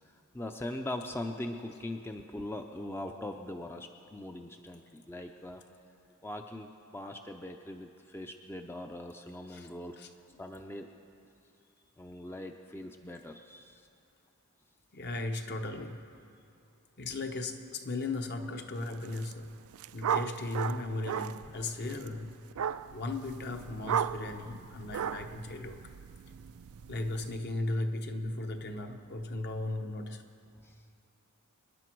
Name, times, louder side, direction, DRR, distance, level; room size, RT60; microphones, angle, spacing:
voice 1, 0.3-5.6 6.2-10.0 10.4-10.9 12.0-13.9 30.6-30.8, left 1 dB, 10° left, 0.5 m, -41 dB
voice 2, 14.9-16.1 17.0-19.5 19.9-22.4 22.9-25.8 26.9-30.2, left 2 dB, 50° left, 1.0 m, -36 dB
sound 1, 18.9-19.3 19.6-27.4, right 8 dB, 70° right, 0.4 m, -36 dB
25.5 x 10.5 x 4.6 m
head